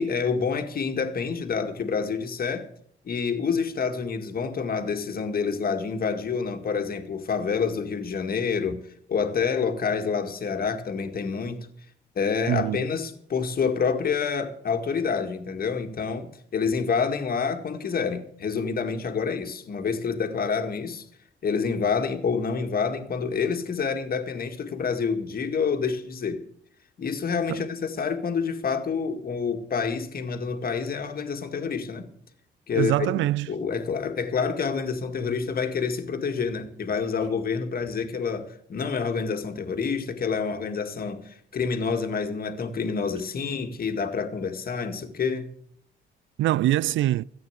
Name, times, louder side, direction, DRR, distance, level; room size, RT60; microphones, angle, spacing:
voice 1, 0.0-2.7 3.0-8.8 9.1-11.7 12.2-21.1 21.4-26.4 27.0-32.1 32.7-33.1 33.5-45.5, left 5 dB, 50° left, 2.0 m, -28 dB
voice 2, 12.5-12.8 27.5-27.6 32.8-33.5 46.4-47.2, right 15 dB, 75° right, 0.4 m, -23 dB
14.0 x 8.6 x 8.1 m
cardioid pair, 90°, 20 cm